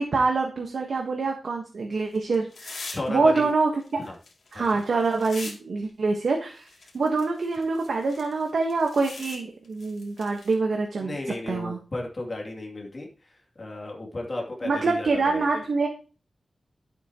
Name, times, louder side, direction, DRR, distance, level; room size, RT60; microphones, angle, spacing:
voice 1, 0.0-3.7 4.5-6.7 6.9-11.8 14.6-15.9, right 3 dB, 65° right, 1 dB, 1.4 m, -25 dB
sound 1, 1.9-3.1 3.4-5.5 5.9-6.0 6.6-9.4 9.6-10.5, left 3 dB, 85° left, 2.8 m, -42 dB
voice 2, 2.9-3.5 4.0-4.2 4.5-4.6 11.0-15.4, left 2 dB, 35° left, -1 dB, 2.8 m, -34 dB
12.5 x 8.2 x 3.0 m, 0.36 s
wide cardioid pair, 145°, 0 cm